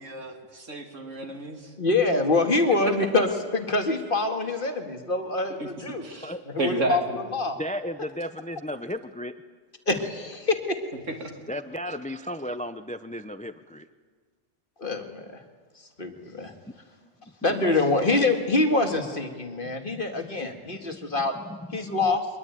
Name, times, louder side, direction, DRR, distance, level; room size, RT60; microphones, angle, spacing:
voice 1, 0.0-1.7 5.6-5.7 6.0-7.2 11.1-11.3, right 2 dB, 75° right, 4 dB, 3.0 m, -31 dB
voice 2, 1.8-6.1 6.5-7.0 7.3-7.6 9.9-10.8 14.8-15.4 16.0-16.5 17.4-21.3 21.7-22.3, left 3 dB, 45° left, 5 dB, 2.1 m, -25 dB
voice 3, 7.6-9.4 11.5-13.9 17.4-17.8 19.6-20.0 21.0-22.1, equal, 10° left, 11 dB, 0.4 m, -35 dB
23.5 x 21.0 x 9.2 m, 1.5 s
omnidirectional pair, 1.3 m